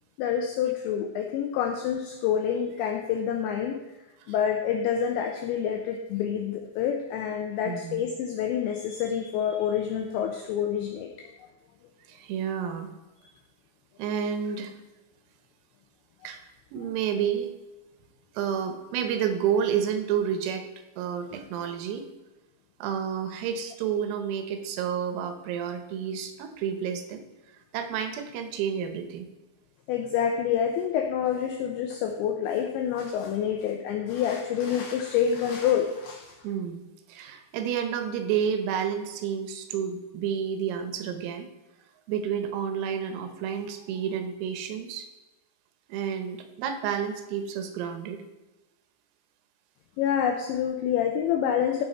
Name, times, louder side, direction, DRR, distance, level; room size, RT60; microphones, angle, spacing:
voice 1, 0.2-3.8 4.3-11.3 29.9-36.4 50.0-51.8, left 8 dB, 85° left, 4 dB, 2.5 m, -27 dB
voice 2, 7.6-8.0 12.1-12.9 14.0-14.8 16.3-16.5 16.7-17.5 18.4-20.7 21.0-22.1 22.8-27.2 27.7-29.3 36.4-41.5 42.1-45.1 45.9-48.2, right 8 dB, 85° right, 7 dB, 3.7 m, -30 dB
14.5 x 5.7 x 4.2 m, 1.1 s
omnidirectional pair, 6.0 m